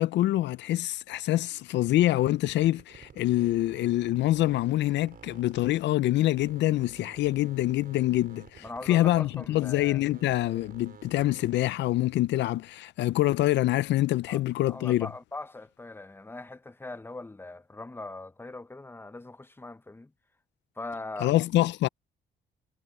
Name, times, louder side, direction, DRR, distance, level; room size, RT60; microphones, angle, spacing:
voice 1, 0.0-15.1 21.2-21.9, left 15 dB, 80° left, 0.4 m, -25 dB
sound 1, 1.8-6.1 6.3-11.8, right 7 dB, 55° right, 4.1 m, -52 dB
voice 2, 8.6-10.0 14.3-14.4 14.7-20.1 20.8-21.3, left 2 dB, 10° left, 0.9 m, -41 dB
cardioid pair, 90°, 18 cm